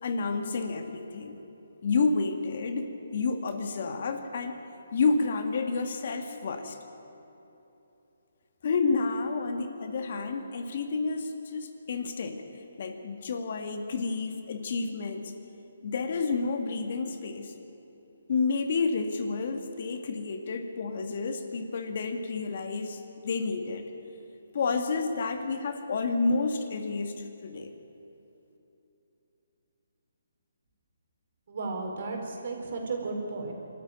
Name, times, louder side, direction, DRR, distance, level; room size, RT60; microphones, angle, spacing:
voice 1, 0.0-1.4 1.8-4.6 4.9-6.8 8.6-12.4 12.8-15.3 15.8-17.5 18.3-23.8 24.5-27.7, left 4 dB, 50° left, 6 dB, 2.0 m, -30 dB
voice 2, 31.5-33.5, right 3 dB, 55° right, 2 dB, 4.4 m, -34 dB
24.5 x 13.5 x 9.2 m, 3.0 s
hypercardioid pair, 160°, 0 cm